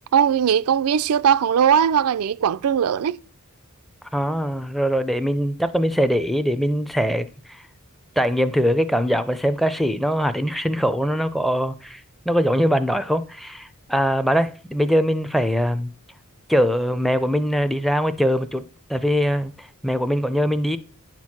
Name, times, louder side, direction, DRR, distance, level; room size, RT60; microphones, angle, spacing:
voice 1, 0.1-3.2, right 8 dB, 75° right, 0.4 m, -19 dB
voice 2, 4.1-7.6 8.2-12.0 12.3-15.9 16.5-18.6 18.9-20.8, equal, ahead, 0.4 m, -22 dB
10.0 x 4.5 x 6.0 m
head